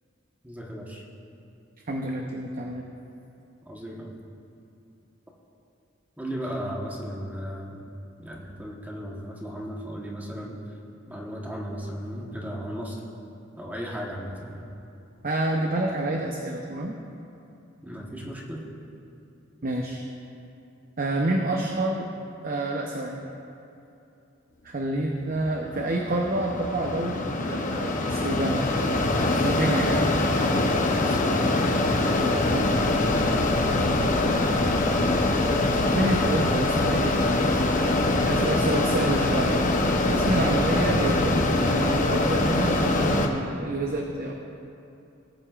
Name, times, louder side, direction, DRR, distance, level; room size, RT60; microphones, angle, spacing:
voice 1, 0.4-1.0 3.6-4.1 6.2-7.9 8.2-10.6 11.1-13.0 13.5-14.7 17.8-18.7 30.8-31.3 34.1-34.7 35.9-36.2 38.1-38.8 40.3-40.6, equal, 10° right, -3 dB, 1.2 m, -36 dB
voice 2, 1.9-2.8 15.2-16.9 19.6-20.0 21.0-22.1 22.4-23.2 24.6-27.2 27.5-28.7 29.3-30.1 32.2-32.7 35.7-37.3 37.7-37.9 38.2-39.6 40.0-44.3, right 1 dB, 45° right, 1 dB, 0.7 m, -28 dB
Mechanisms, 25.3-43.3, left 2 dB, 40° left, 0.8 m, -23 dB
19.0 x 8.6 x 2.4 m, 2.7 s
head